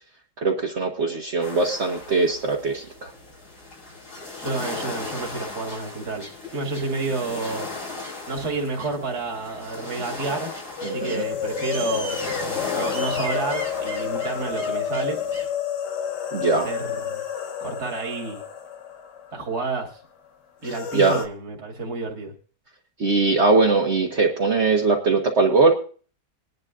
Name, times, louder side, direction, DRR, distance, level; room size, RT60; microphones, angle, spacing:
voice 1, 0.4-3.1 10.8-11.2 16.3-16.7 20.6-21.2 23.0-25.7, right 3 dB, 45° right, -1 dB, 1.4 m, -21 dB
sound 1, 1.4-15.5, left 2 dB, 65° left, 5.7 m, -36 dB
voice 2, 4.4-7.7 8.3-10.5 10.8-12.2 12.7-15.2 16.4-17.2 17.6-18.4 19.3-20.0 20.6-22.3, right 3 dB, 70° right, -1 dB, 2.8 m, -30 dB
sound 2, 10.8-19.6 19.9-20.0 20.6-21.3, left 8 dB, 90° left, 1.7 m, -30 dB
21.5 x 11.0 x 2.5 m, 0.40 s
omnidirectional pair, 1.8 m